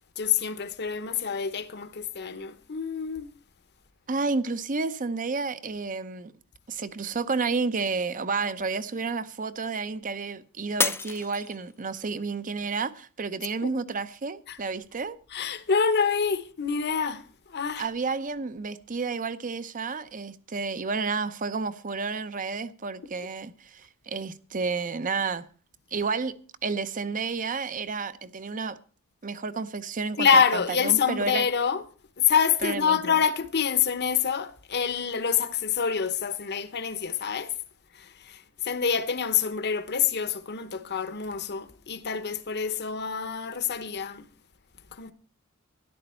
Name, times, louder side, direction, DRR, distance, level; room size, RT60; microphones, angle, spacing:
voice 1, 0.2-3.3 13.6-13.7 14.5-14.6 15.3-17.2 17.5-17.9 30.2-31.8 32.2-37.5 37.9-44.3 44.9-45.1, left 6 dB, 50° left, 1.0 m, -26 dB
voice 2, 4.1-6.3 6.7-15.2 17.8-25.5 25.9-26.4 26.6-28.8 29.2-31.5 32.6-33.2, right 4 dB, 40° right, 0.7 m, -31 dB
Shatter, 10.8-12.1 12.6-13.1 13.6-13.7, left 4 dB, 10° left, 0.5 m, -29 dB
13.0 x 11.5 x 4.4 m
head